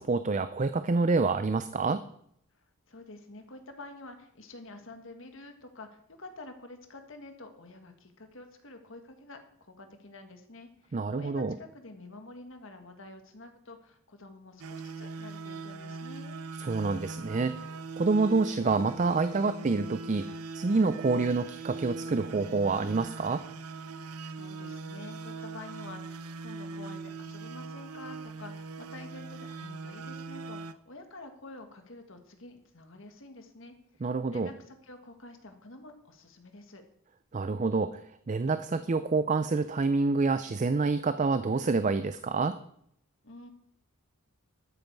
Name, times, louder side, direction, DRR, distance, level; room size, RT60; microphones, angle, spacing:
voice 1, 0.0-2.0 10.9-11.5 16.6-20.3 20.5-23.4 34.0-34.5 37.3-42.6, right 3 dB, 35° right, 12 dB, 0.4 m, -27 dB
voice 2, 2.9-16.4 24.0-36.8 43.2-43.5, left 2 dB, 60° left, 6 dB, 1.7 m, -48 dB
sound 1, 14.6-30.7, right 3 dB, 85° right, 0.7 m, -41 dB
13.0 x 9.1 x 4.6 m, 0.72 s
head